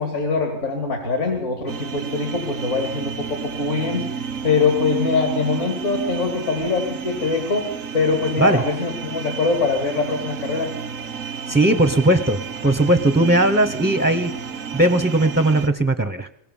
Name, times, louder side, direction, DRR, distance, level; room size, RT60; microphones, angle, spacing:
voice 1, 0.0-10.7, left 4 dB, 65° left, 3 dB, 3.0 m, -23 dB
sound 1, 1.7-15.7, right 6 dB, 90° right, 1.5 m, -31 dB
voice 2, 11.5-16.3, right 1 dB, 10° right, 8 dB, 0.6 m, -18 dB
22.0 x 18.5 x 7.1 m, 0.81 s
omnidirectional pair, 1.3 m